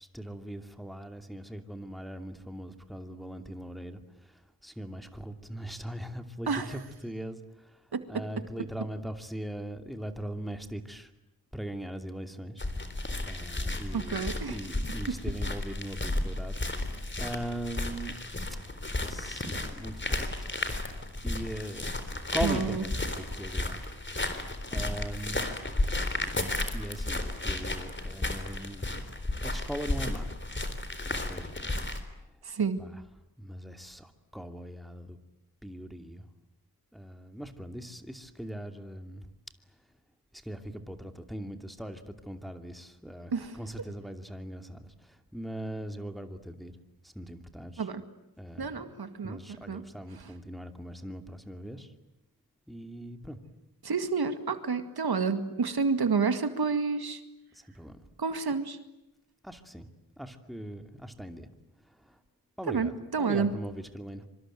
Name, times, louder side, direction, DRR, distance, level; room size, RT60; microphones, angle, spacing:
voice 1, 0.0-7.8 8.1-11.1 11.5-16.5 17.2-18.2 19.0-20.5 21.2-23.9 24.7-25.5 26.2-26.3 26.7-29.1 29.4-30.4 31.0-31.5 32.0-32.1 32.8-33.0 33.4-35.2 35.6-36.3 36.9-39.3 40.3-46.8 47.0-47.9 48.4-48.8 49.2-51.9 52.7-53.4 57.5-58.0 59.4-59.9 60.2-61.5 61.8-62.2 62.6-64.2, right 1 dB, ahead, 7 dB, 2.6 m, -40 dB
voice 2, 6.5-6.8 7.9-8.2 13.9-14.6 22.4-22.8 32.4-32.8 43.3-43.6 47.8-48.0 48.6-49.8 53.8-57.2 58.2-58.8 62.7-63.5, right 5 dB, 80° right, 10 dB, 2.1 m, -29 dB
sound 1, 12.6-32.0, left 2 dB, 30° left, 3.9 m, -33 dB
25.5 x 25.5 x 9.2 m, 0.91 s
wide cardioid pair, 95°, 37 cm